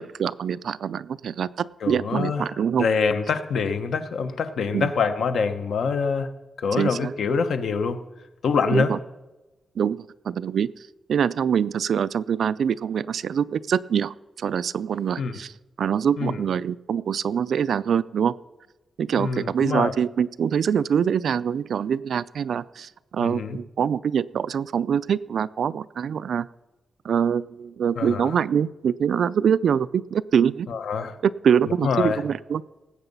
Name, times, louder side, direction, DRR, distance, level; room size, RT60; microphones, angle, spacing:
voice 1, 0.0-2.9 4.7-4.9 6.8-7.1 8.7-9.0 9.8-10.7 11.1-15.5 15.8-18.3 19.0-26.5 27.0-30.7 31.2-32.6, right 8 dB, 65° right, 17 dB, 0.3 m, -24 dB
voice 2, 1.8-2.5 2.8-6.3 6.6-8.0 8.4-8.9 15.2-15.3 16.2-16.4 19.2-19.9 23.2-23.6 28.0-28.3 30.7-31.2 31.8-32.2, left 5 dB, 65° left, 9 dB, 0.9 m, -25 dB
18.5 x 8.1 x 5.4 m, 1.1 s
wide cardioid pair, 170°, 0 cm